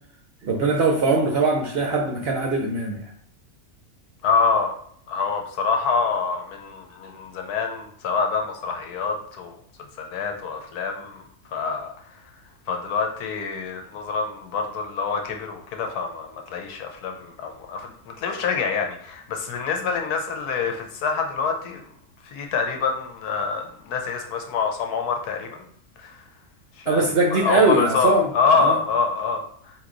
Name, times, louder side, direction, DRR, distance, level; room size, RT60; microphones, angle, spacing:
voice 1, 0.4-3.1 26.9-28.3 28.6-28.8, right 3 dB, 60° right, 1 dB, 0.7 m, -21 dB
voice 2, 4.2-4.8 5.1-9.6 10.0-11.2 11.5-11.9 12.7-21.8 22.2-25.6 26.0-26.2 26.8-27.0 27.3-29.7, left 5 dB, 90° left, 4 dB, 1.3 m, -26 dB
3.8 x 3.0 x 3.8 m, 0.64 s
omnidirectional pair, 1.6 m